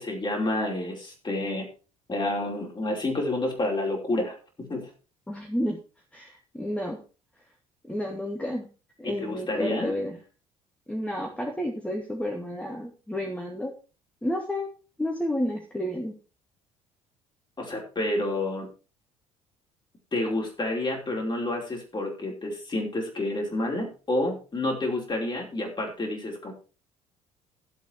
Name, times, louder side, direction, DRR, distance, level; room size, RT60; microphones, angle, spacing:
voice 1, 0.0-1.6 2.1-4.9 9.0-9.9 17.6-18.7 20.1-26.5, left 1 dB, 25° left, 1 dB, 5.2 m, -29 dB
voice 2, 5.3-5.8 6.1-7.0 7.9-8.7 9.0-10.2 10.9-13.7 14.2-14.7 15.0-16.1, equal, 5° left, 1 dB, 2.5 m, -31 dB
13.5 x 8.1 x 4.7 m, 0.34 s
figure-of-eight pair, 55°, 17 cm